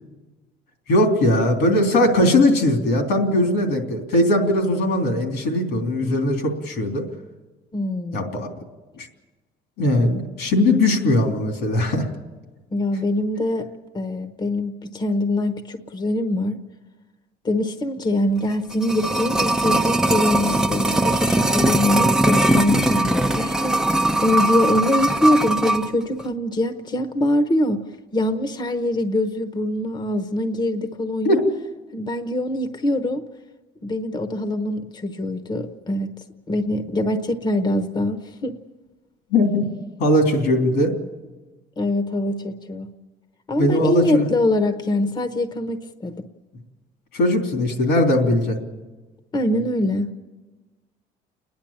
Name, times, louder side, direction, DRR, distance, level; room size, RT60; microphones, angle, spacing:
voice 1, 0.9-7.0 8.1-8.5 9.0-9.1 9.8-12.0 31.2-31.4 39.3-39.7 40.0-40.9 43.6-44.3 47.1-48.6, left 1 dB, 85° left, 3 dB, 3.3 m, -19 dB
voice 2, 7.7-8.4 12.7-13.7 13.9-16.6 17.4-27.8 28.1-31.4 31.9-33.3 33.8-36.1 36.5-38.6 41.8-42.9 43.5-46.2 49.3-50.1, left 1 dB, 25° left, 8 dB, 1.0 m, -23 dB
sound 1, 18.5-25.9 26.2-26.3, right 1 dB, 5° right, 0.7 m, -20 dB
29.5 x 10.5 x 8.7 m, 1.2 s
cardioid pair, 110°, 17 cm